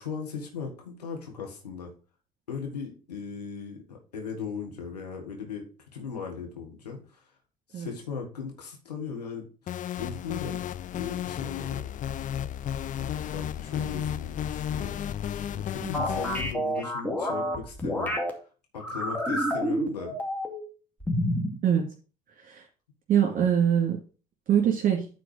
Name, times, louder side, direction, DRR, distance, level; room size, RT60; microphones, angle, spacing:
voice 1, 0.0-1.9 2.5-5.7 5.9-7.3 7.7-9.7 10.0-10.6 10.9-11.8 13.0-15.0 15.5-18.2 18.7-20.1 23.2-23.5, left 6 dB, 90° left, 1 dB, 1.7 m, -38 dB
sound 1, 9.7-16.5, left 10 dB, 40° left, 0.5 m, -33 dB
sound 2, 15.9-18.3 18.8-20.7 21.0-21.6, equal, 10° left, 2.4 m, -29 dB
voice 2, 23.1-24.0 24.5-25.1, right 9 dB, 45° right, 1 dB, 2.2 m, -23 dB
9.3 x 4.4 x 4.9 m, 0.36 s
hypercardioid pair, 55°, 20 cm